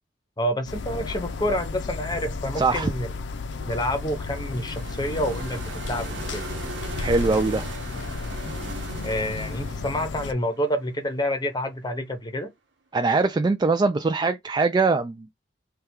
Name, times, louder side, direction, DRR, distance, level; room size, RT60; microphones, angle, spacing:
voice 1, 0.4-3.1 3.7-6.4 9.0-12.5, equal, 25° left, 0.8 m, -28 dB
sound 1, 0.7-10.3, left 4 dB, 80° left, 0.5 m, -33 dB
voice 2, 2.6-2.9 7.0-7.7 12.9-15.3, right 3 dB, 25° right, 0.3 m, -22 dB
sound 2, 3.4-11.4, right 3 dB, 90° right, 0.9 m, -40 dB
3.4 x 2.4 x 4.3 m
head